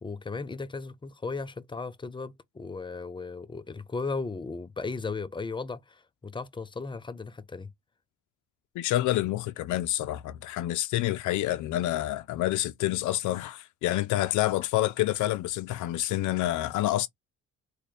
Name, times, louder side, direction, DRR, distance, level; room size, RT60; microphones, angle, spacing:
voice 1, 0.0-7.7, left 4 dB, 15° left, 0.4 m, -36 dB
voice 2, 8.8-17.1, left 15 dB, 75° left, 0.5 m, -28 dB
3.2 x 2.3 x 4.0 m
cardioid pair, 90°, 30 cm